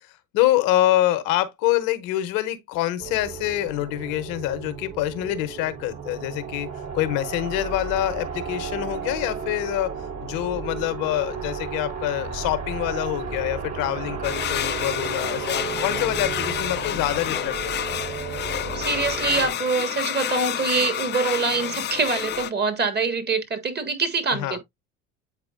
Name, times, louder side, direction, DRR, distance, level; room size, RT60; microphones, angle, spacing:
voice 1, 0.3-6.7 6.9-9.9 10.2-17.9 24.3-24.6, left 14 dB, 60° left, 0.9 m, -25 dB
sound 1, 3.0-19.5, right 6 dB, 45° right, 2.8 m, -33 dB
sound 2, 14.2-22.5, left 11 dB, 30° left, 0.4 m, -29 dB
voice 2, 18.7-24.6, right 4 dB, 25° right, 1.6 m, -24 dB
8.1 x 4.7 x 2.5 m
hypercardioid pair, 65°, 38 cm